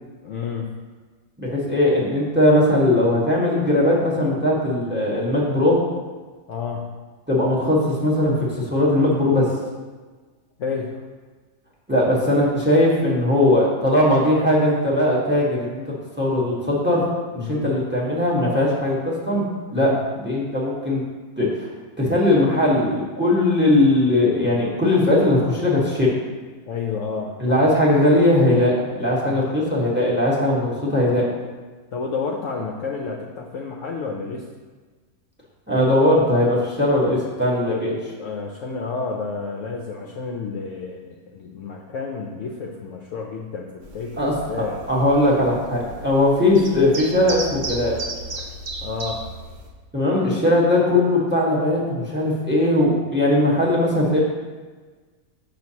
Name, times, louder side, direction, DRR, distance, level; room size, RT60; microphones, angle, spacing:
voice 1, 0.2-0.7 6.5-6.9 10.6-11.0 17.4-17.7 19.7-20.0 26.7-27.7 29.2-29.4 31.9-34.5 36.8-36.9 37.7-37.8 38.2-44.8 48.3-49.3, left 5 dB, 65° left, 0 dB, 0.8 m, -30 dB
voice 2, 1.4-5.8 7.3-9.5 11.9-17.0 17.3-19.4 19.7-19.9 20.2-21.0 21.4-21.7 22.0-26.1 27.4-31.2 35.7-38.0 44.2-44.3 44.9-48.0 49.9-54.2, left 1 dB, 5° right, -4 dB, 1.2 m, -19 dB
sound 1, 43.8-49.7, right 2 dB, 45° right, 0.6 m, -35 dB
6.6 x 6.1 x 2.8 m, 1.4 s
omnidirectional pair, 1.7 m